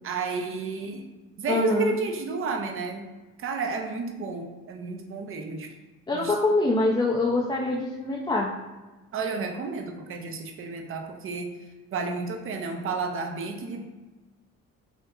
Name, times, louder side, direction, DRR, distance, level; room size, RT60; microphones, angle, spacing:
voice 1, 0.0-1.1 1.4-3.1 3.4-5.7 6.1-6.3 9.1-11.6 11.9-13.8, right 4 dB, 45° right, 4 dB, 0.5 m, -31 dB
voice 2, 1.5-1.9 6.1-8.5, left 2 dB, 15° left, -5 dB, 0.4 m, -24 dB
3.5 x 2.7 x 2.3 m, 1.2 s
cardioid pair, 90°, 30 cm